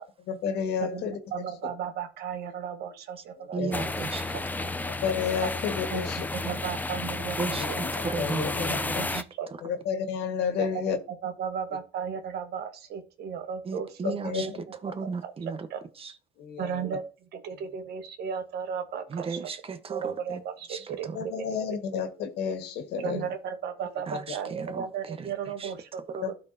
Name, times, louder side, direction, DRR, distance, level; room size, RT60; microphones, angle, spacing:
voice 1, 0.3-1.1 3.4-3.8 4.8-6.2 7.6-9.1 9.6-11.0 14.0-14.4 14.9-15.0 16.4-16.8 21.1-23.2 26.2-26.3, left 7 dB, 75° left, 1.6 m, -31 dB
voice 2, 0.8-3.9 4.3-4.4 5.4-5.5 5.9-7.8 8.4-8.5 8.9-9.5 10.6-15.3 15.7-15.8 16.6-17.0 17.3-19.4 19.9-21.4 21.9-22.0 23.0-26.3, right 7 dB, 75° right, 1.3 m, -35 dB
voice 3, 3.5-4.4 7.4-7.6 8.0-9.2 13.6-14.5 14.8-15.7 16.0-16.1 19.1-20.4 20.7-21.2 24.1-25.3 25.6-25.7, right 5 dB, 35° right, 1.1 m, -35 dB
sound 1, 3.7-9.2, left 2 dB, 10° left, 0.5 m, -32 dB
12.5 x 4.3 x 2.8 m
cardioid pair, 110°, 17 cm